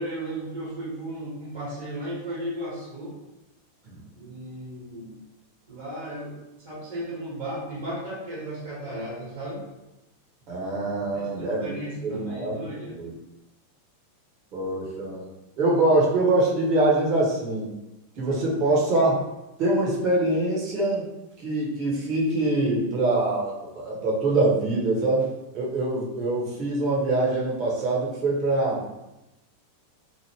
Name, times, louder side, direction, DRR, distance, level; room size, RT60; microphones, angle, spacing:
voice 1, 0.0-3.1 4.1-5.1 5.7-9.7 11.1-12.9, right 1 dB, 65° right, -8 dB, 1.3 m, -35 dB
voice 2, 10.5-11.7 12.0-12.6 13.0-13.1 14.5-15.3 15.6-17.7 18.2-19.2 19.6-21.1 21.4-25.3 25.5-28.8, right 2 dB, 35° right, -4 dB, 0.9 m, -24 dB
2.9 x 2.5 x 3.0 m, 0.96 s
figure-of-eight pair, 90°, 0 cm